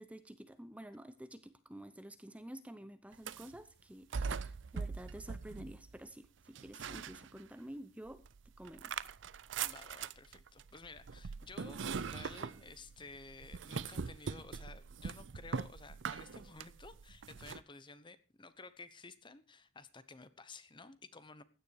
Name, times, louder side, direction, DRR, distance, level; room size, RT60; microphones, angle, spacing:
voice 1, 0.0-8.2 8.6-9.1, right 1 dB, 5° right, 11 dB, 0.7 m, -50 dB
sound 1, 3.1-3.6 4.1-6.1 6.5-7.7 8.1-17.6, right 5 dB, 65° right, 0.6 m, -42 dB
voice 2, 9.6-21.4, left 3 dB, 25° left, 14 dB, 0.9 m, -53 dB
15.5 x 10.0 x 4.7 m, 0.34 s
head